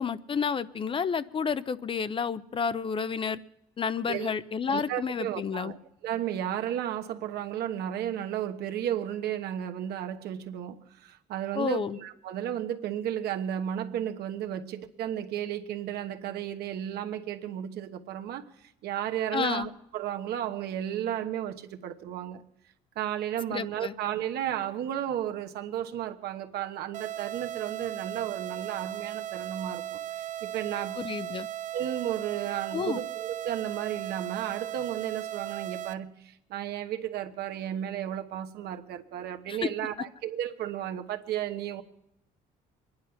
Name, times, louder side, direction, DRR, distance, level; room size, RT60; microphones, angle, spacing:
voice 1, 0.0-3.4 3.8-5.7 11.5-12.0 19.3-19.7 23.5-23.9 31.0-31.5 32.7-33.0 39.5-39.7, left 6 dB, 30° left, 0.5 m, -30 dB
voice 2, 4.7-5.8 6.0-18.4 18.8-22.4 22.9-31.1 31.7-41.8, right 10 dB, 75° right, 1.1 m, -33 dB
sound 1, 26.9-35.9, right 12 dB, 50° right, 0.6 m, -37 dB
23.5 x 10.5 x 5.8 m
cardioid pair, 110°, 17 cm